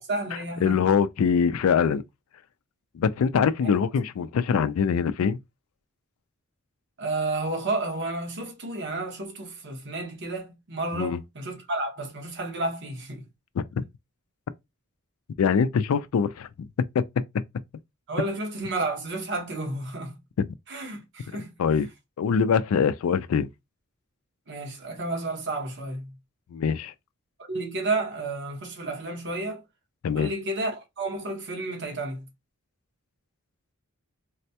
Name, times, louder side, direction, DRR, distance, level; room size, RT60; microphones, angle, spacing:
voice 1, 0.1-0.9 7.0-13.3 18.1-20.2 20.7-21.5 24.5-26.1 27.4-29.6 30.1-32.3, right 2 dB, 55° right, 1.1 m, -31 dB
voice 2, 0.6-2.0 2.9-5.4 10.9-11.2 13.6-13.8 15.4-16.5 16.9-17.0 20.4-20.5 21.6-21.9 22.2-23.5 26.5-26.9 30.0-30.3, left 6 dB, 70° left, 0.4 m, -23 dB
4.0 x 2.2 x 2.7 m
head